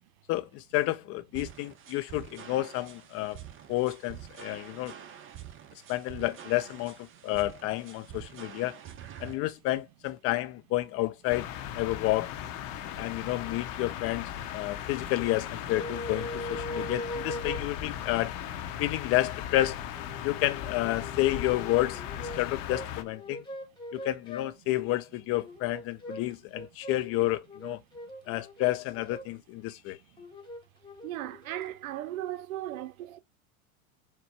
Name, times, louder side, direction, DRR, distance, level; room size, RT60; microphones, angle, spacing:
voice 1, 0.3-3.4 3.7-4.9 5.9-8.8 9.2-11.5 11.7-12.3 13.0-18.3 18.8-19.8 20.2-23.4 23.9-27.8 28.3-30.0, left 16 dB, 35° left, 0.4 m, -30 dB
sound 1, 1.3-9.3, right 10 dB, 30° right, 0.8 m, -47 dB
sound 2, 11.3-23.0, left 10 dB, 65° left, 0.8 m, -38 dB
sound 3, 15.7-17.6 19.9-22.4 22.7-24.5 25.4-26.2 26.5-29.3 30.2-31.7, left 1 dB, 10° left, 1.2 m, -40 dB
voice 2, 31.0-33.2, right 13 dB, 80° right, 0.6 m, -36 dB
4.3 x 2.2 x 4.4 m
hypercardioid pair, 105°, 42 cm